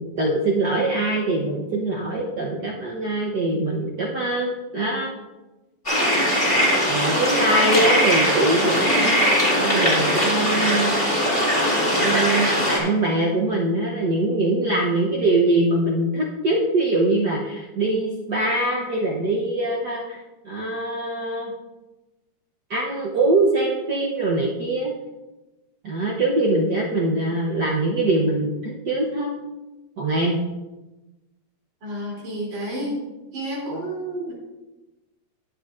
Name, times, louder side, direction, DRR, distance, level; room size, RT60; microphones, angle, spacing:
voice 1, 0.0-5.1 6.8-10.9 12.0-21.5 22.7-24.9 25.8-29.3 30.0-30.4, right 2 dB, 80° right, -3 dB, 0.9 m, -23 dB
sound 1, 5.9-12.8, equal, 15° left, 3.1 m, -20 dB
voice 2, 31.8-33.0 33.3-34.3, right 1 dB, 65° right, -5 dB, 4.5 m, -30 dB
19.0 x 6.5 x 2.6 m, 1.1 s
omnidirectional pair, 3.4 m